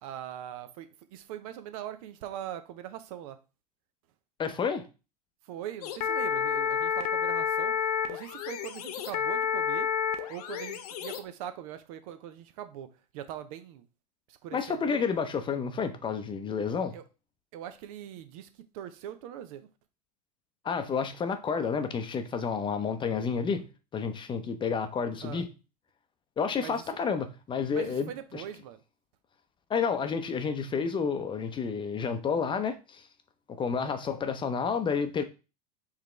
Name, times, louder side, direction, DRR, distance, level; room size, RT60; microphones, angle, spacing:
voice 1, 0.0-3.4 5.5-9.9 10.3-12.9 13.1-13.8 14.3-15.0 16.9-17.0 17.5-19.7 25.2-25.4 26.6-26.8 27.7-28.8 33.7-33.9, right 11 dB, 60° right, 0.6 m, -41 dB
voice 2, 4.4-4.8 14.5-17.0 20.6-23.7 23.9-25.5 26.4-28.4 29.7-33.0 33.5-35.2, left 6 dB, 25° left, 0.6 m, -30 dB
sound 1, 5.8-11.2, left 8 dB, 65° left, 0.6 m, -30 dB
4.8 x 3.4 x 3.2 m
hypercardioid pair, 90°, 20 cm